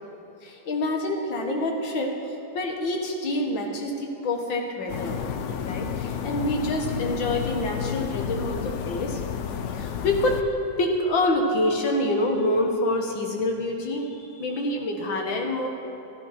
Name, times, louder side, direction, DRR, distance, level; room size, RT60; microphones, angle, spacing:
voice 1, 0.4-2.2 2.5-5.2 5.6-9.2 9.8-14.0 14.3-15.7, left 1 dB, 85° left, 2 dB, 2.3 m, -26 dB
sound 1, 4.9-10.4, left 8 dB, 70° left, 0.6 m, -31 dB
14.0 x 12.0 x 6.0 m, 2.9 s
omnidirectional pair, 2.0 m